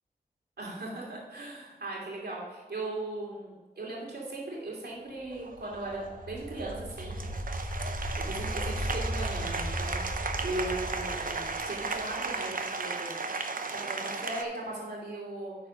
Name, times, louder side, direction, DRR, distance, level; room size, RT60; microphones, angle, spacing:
voice 1, 0.6-7.3 8.2-13.1 13.7-15.6, right 2 dB, 70° right, -3 dB, 2.8 m, -38 dB
Applause, 5.3-14.4, right 3 dB, 55° right, 0.8 m, -35 dB
sound 1, 5.5-12.4, equal, 25° left, 3.0 m, -36 dB
11.5 x 4.2 x 5.4 m, 1.3 s
cardioid pair, 50°, 17 cm